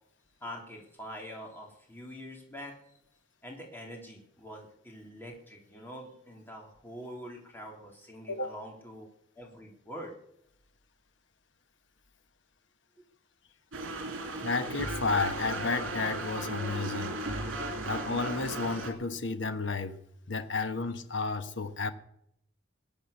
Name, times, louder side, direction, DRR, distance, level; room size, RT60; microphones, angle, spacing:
voice 1, 0.4-2.7 3.4-9.1 9.4-10.1, equal, 10° left, 0 dB, 3.5 m, -45 dB
sound 1, 13.7-18.9, right 2 dB, 75° right, 3.2 m, -36 dB
voice 2, 14.4-17.2 17.8-20.0 20.3-21.9, left 3 dB, 60° left, 9 dB, 1.2 m, -32 dB
21.5 x 8.7 x 6.7 m, 0.75 s
head